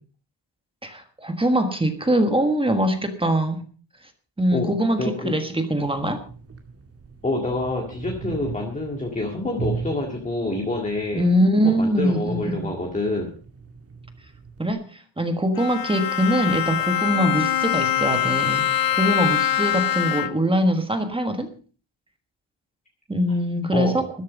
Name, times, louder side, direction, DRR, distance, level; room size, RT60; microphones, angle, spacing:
voice 1, 0.8-3.6 4.4-6.2 11.1-12.7 14.6-21.5 23.1-24.0, right 1 dB, 10° right, 7 dB, 1.5 m, -23 dB
voice 2, 5.0-5.3 7.2-11.2 11.6-13.3 23.7-24.1, left 2 dB, 15° left, 1 dB, 2.0 m, -27 dB
sound 1, 5.8-14.7, right 5 dB, 30° right, 2.1 m, -38 dB
Bowed string instrument, 15.5-20.6, left 10 dB, 50° left, 0.5 m, -23 dB
13.5 x 12.0 x 5.2 m, 0.39 s
wide cardioid pair, 175°, 46 cm